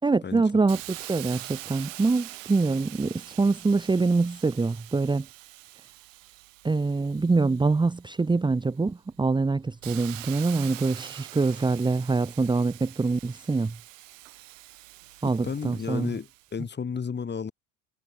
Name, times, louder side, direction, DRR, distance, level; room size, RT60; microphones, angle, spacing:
voice 1, 0.0-5.3 6.6-13.7 15.2-16.1, right 3 dB, 10° right, 1.1 m, -25 dB
Hiss, 0.7-8.3 8.8-16.5, right 17 dB, 80° right, 4.3 m, -44 dB
voice 2, 15.4-17.5, left 6 dB, 25° left, 4.4 m, -32 dB
hypercardioid pair, 80°, 38 cm